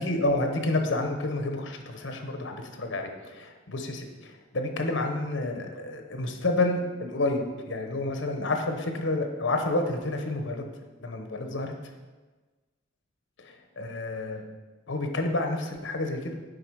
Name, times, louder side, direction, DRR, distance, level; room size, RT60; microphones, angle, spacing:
voice 1, 0.0-10.6 11.0-11.7 13.4-14.4 14.9-16.3, left 2 dB, 75° left, 5 dB, 1.0 m, -29 dB
7.7 x 5.2 x 4.7 m, 1.3 s
head